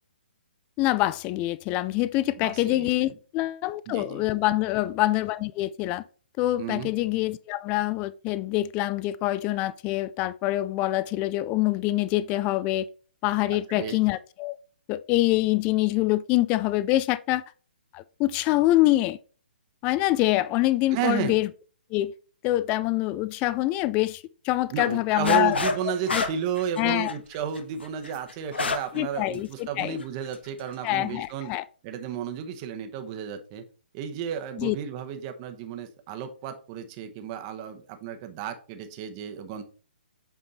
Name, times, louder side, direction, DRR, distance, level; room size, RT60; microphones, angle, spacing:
voice 1, 0.8-6.0 6.4-12.9 13.2-14.6 14.9-17.4 17.9-19.2 19.8-21.5 21.9-22.1 22.4-25.6 26.1-26.2 26.8-27.1 28.9-30.0 30.8-31.7 34.6-34.8, left 17 dB, 25° left, 0.3 m, -25 dB
voice 2, 2.4-2.9 3.9-4.2 6.6-6.9 13.5-14.0 20.9-21.4 24.7-31.5 31.8-33.6 33.9-39.6, right 8 dB, 30° right, 1.0 m, -33 dB
sound 1, 25.2-25.8 26.1-29.0 29.3-29.4 30.0-30.3, left 3 dB, 85° left, 1.1 m, -28 dB
8.0 x 3.6 x 4.1 m
hypercardioid pair, 140°, 6 cm